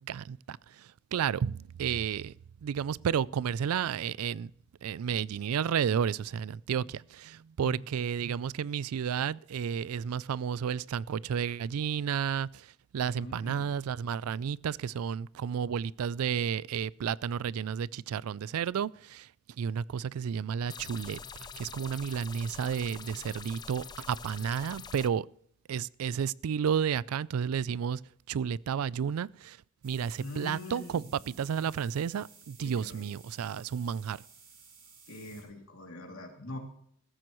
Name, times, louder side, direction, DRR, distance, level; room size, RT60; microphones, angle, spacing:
voice 1, 0.1-2.3 2.6-4.5 4.8-12.7 12.9-19.3 19.6-21.2 21.6-25.3 25.7-28.0 28.3-29.6 29.8-34.2, right 7 dB, 80° right, 0.4 m, -32 dB
voice 2, 13.1-13.7 30.2-31.0 32.6-33.0 33.5-33.6 35.1-36.6, left 2 dB, 70° left, 2.7 m, -43 dB
sound 1, 20.7-25.1, left 5 dB, 20° left, 0.4 m, -45 dB
sound 2, 29.8-35.4, right 5 dB, 40° right, 5.7 m, -56 dB
15.5 x 14.0 x 3.1 m
head